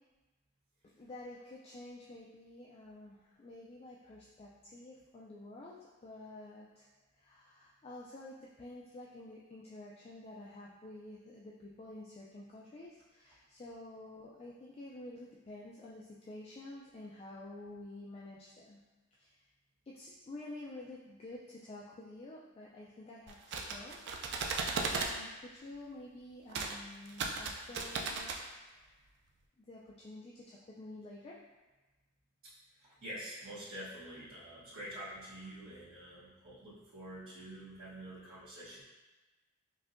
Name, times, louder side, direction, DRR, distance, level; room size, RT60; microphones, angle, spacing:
voice 1, 0.8-18.8 19.1-19.4 19.9-28.4 28.8-29.0 29.6-31.4, left 2 dB, 30° left, -4 dB, 0.3 m, -50 dB
sound 1, 23.3-25.1 26.5-26.7 27.1-28.4, right 4 dB, 55° right, 0.4 m, -36 dB
voice 2, 33.0-38.8, right 1 dB, 75° right, -12 dB, 1.3 m, -47 dB
5.4 x 2.7 x 2.6 m, 1.2 s
head